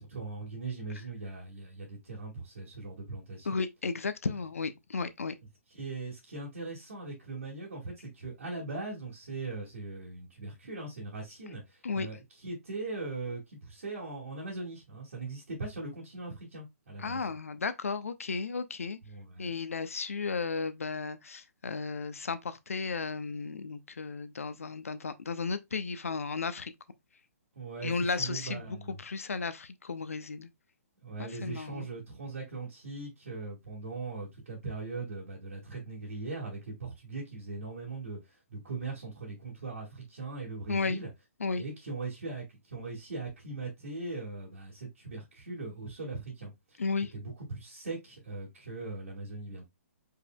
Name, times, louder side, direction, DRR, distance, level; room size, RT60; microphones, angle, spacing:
voice 1, 0.0-3.6 5.7-17.3 19.0-19.5 27.6-29.0 31.0-41.1 41.6-46.8 47.1-49.6, right 3 dB, 65° right, 2.0 m, -40 dB
voice 2, 3.5-5.3 11.8-12.1 17.0-19.0 19.4-26.7 27.8-28.6 29.0-30.5 31.2-31.9 40.7-41.0 41.4-41.6 46.8-47.1, left 4 dB, 65° left, 0.7 m, -34 dB
5.0 x 4.7 x 2.3 m
figure-of-eight pair, 125°, 8 cm